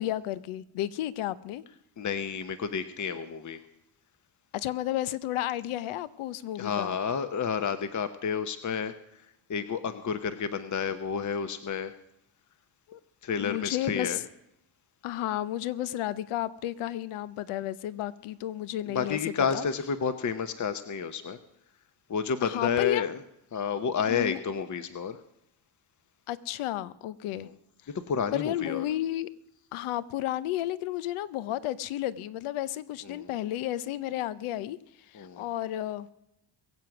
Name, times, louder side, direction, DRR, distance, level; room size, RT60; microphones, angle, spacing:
voice 1, 0.0-1.6 4.5-7.0 12.9-13.0 13.4-14.2 15.0-19.2 19.5-19.6 22.4-23.1 24.1-24.4 26.3-27.5 28.3-29.3 29.7-34.8 35.1-36.1, left 13 dB, 80° left, 17 dB, 0.8 m, -32 dB
voice 2, 2.0-3.6 6.5-11.9 13.2-14.2 18.9-21.4 22.1-23.2 23.5-25.2 27.4-27.5 27.9-28.8 33.0-33.3 35.1-35.5, left 6 dB, 35° left, 10 dB, 0.9 m, -30 dB
22.0 x 7.8 x 6.0 m, 0.84 s
cardioid pair, 80°, 49 cm